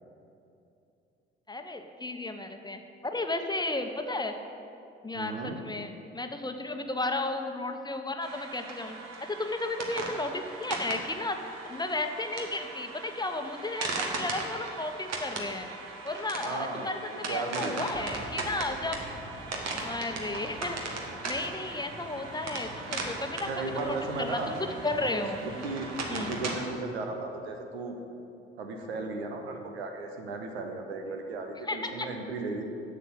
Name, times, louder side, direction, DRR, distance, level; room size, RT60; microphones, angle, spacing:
voice 1, 1.5-4.3 5.0-11.4 11.7-15.7 16.0-17.0 17.3-19.0 19.8-21.0 21.2-23.5 23.8-24.6 24.8-25.5 26.1-26.4 31.7-32.1, left 2 dB, 15° left, 6 dB, 1.0 m, -34 dB
voice 2, 5.1-5.6 16.4-18.3 23.5-24.6 25.4-28.0 28.6-32.6, right 3 dB, 80° right, 4 dB, 1.0 m, -35 dB
sound 1, 8.2-26.5, right 3 dB, 55° right, 1.6 m, -38 dB
sound 2, 17.9-26.5, equal, 90° left, 1.2 m, -46 dB
8.2 x 7.4 x 7.7 m, 2.7 s
figure-of-eight pair, 45°, 31 cm